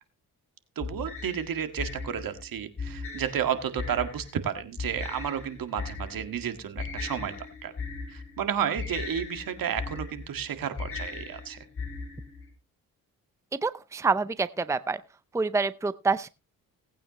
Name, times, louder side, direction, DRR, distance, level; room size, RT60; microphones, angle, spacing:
sound 1, 0.8-12.5, left 4 dB, 35° left, 5.3 m, -38 dB
voice 1, 0.8-7.4 7.6-7.7 8.1-11.7, right 8 dB, 70° right, 9 dB, 1.9 m, -32 dB
voice 2, 13.6-15.0 15.3-16.3, right 4 dB, 10° right, 15 dB, 0.6 m, -27 dB
18.5 x 8.8 x 3.0 m, 0.30 s
cardioid pair, 70°, 36 cm